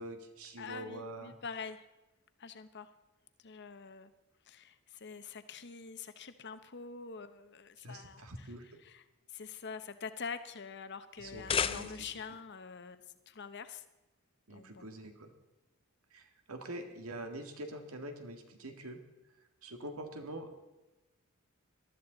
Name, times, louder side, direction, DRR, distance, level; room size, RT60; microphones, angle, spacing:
voice 1, 0.0-1.3 7.8-8.7 11.2-12.1 14.5-15.3 16.1-19.0 19.6-20.7, right 1 dB, 80° right, 5 dB, 1.8 m, -45 dB
voice 2, 0.6-1.9 2.4-2.9 3.4-4.1 4.4-9.0 9.3-13.8 14.5-14.9, left 5 dB, 55° left, 11 dB, 0.9 m, -45 dB
sound 1, 11.2-12.3, left 7 dB, 25° left, 0.4 m, -34 dB
18.5 x 13.0 x 3.9 m, 1.0 s
head